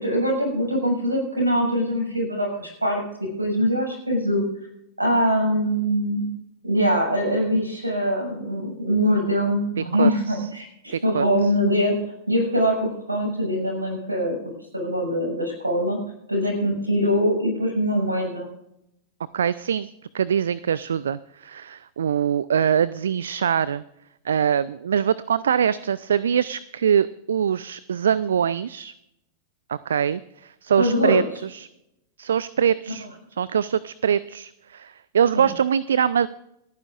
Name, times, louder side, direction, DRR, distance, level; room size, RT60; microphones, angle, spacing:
voice 1, 0.0-4.4 5.0-6.3 6.6-12.0 12.3-14.4 14.7-16.0 16.3-18.5 30.8-31.2 35.3-35.5, equal, 80° right, 1 dB, 6.3 m, -23 dB
voice 2, 10.0-10.4 10.9-11.3 19.3-19.9 20.1-23.8 24.3-28.9 29.7-31.7 32.2-33.1 33.4-36.3, right 8 dB, 65° right, 19 dB, 0.4 m, -23 dB
28.5 x 9.9 x 2.5 m, 0.81 s
figure-of-eight pair, 90°, 0 cm